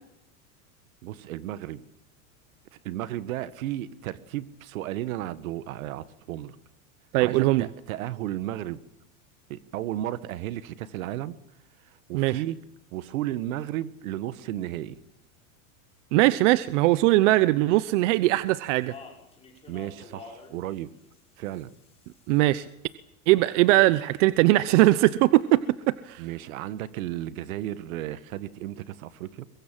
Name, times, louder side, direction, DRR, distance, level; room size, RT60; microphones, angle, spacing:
voice 1, 1.0-1.8 2.8-6.5 7.2-8.8 9.5-11.4 11.9-12.6 12.9-15.0 19.7-20.9 21.4-21.7 26.2-29.4, right 13 dB, 75° right, 15 dB, 1.5 m, -34 dB
voice 2, 7.1-7.7 12.1-12.4 16.1-18.9 22.3-22.6 23.3-25.6 26.0-26.2, right 18 dB, 60° right, 16 dB, 0.9 m, -20 dB
Speech, 18.5-22.6 23.4-24.2, left 5 dB, 15° left, 6.2 m, -50 dB
23.0 x 20.5 x 7.5 m, 0.81 s
supercardioid pair, 135°, 41 cm